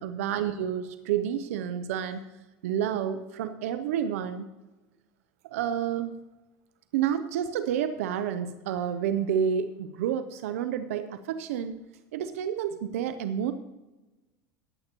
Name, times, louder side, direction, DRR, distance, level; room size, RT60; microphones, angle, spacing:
voice 1, 0.0-2.2 2.6-4.5 5.4-6.1 6.9-11.8 12.1-13.5, right 9 dB, 85° right, 10 dB, 0.6 m, -29 dB
15.5 x 10.0 x 3.0 m, 1.1 s
supercardioid pair, 115°, 8 cm